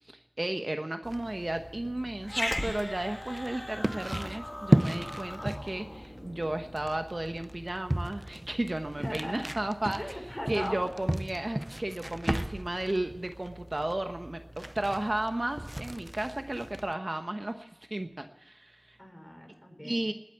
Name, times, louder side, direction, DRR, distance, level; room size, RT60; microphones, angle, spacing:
voice 1, 0.0-10.0 10.5-19.0 19.8-20.1, right 1 dB, 50° right, 6 dB, 1.1 m, -34 dB
sound 1, 1.0-16.9, right 1 dB, 25° right, 0.5 m, -35 dB
Growling, 2.2-6.9, left 1 dB, 35° left, 1.5 m, -38 dB
voice 2, 9.0-9.4 10.0-10.8 19.0-20.0, equal, 15° left, 2 dB, 5.7 m, -39 dB
20.0 x 8.3 x 8.4 m, 1.0 s
wide cardioid pair, 40°, 0 cm